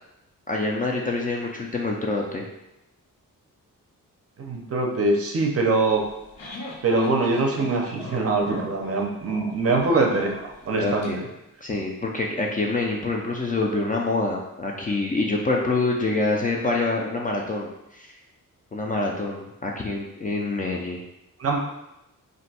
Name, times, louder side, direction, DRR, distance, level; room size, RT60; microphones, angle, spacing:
voice 1, 0.5-2.4 10.7-11.2 11.6-17.7 17.9-18.1 18.7-21.0, left 2 dB, 25° left, -1 dB, 0.3 m, -26 dB
voice 2, 4.4-6.1 6.8-11.1 21.4-21.7, right 3 dB, 45° right, 1 dB, 0.5 m, -23 dB
sound 1, 6.0-11.1, left 2 dB, 90° left, 0.7 m, -40 dB
2.5 x 2.2 x 4.0 m, 0.89 s
wide cardioid pair, 125°, 33 cm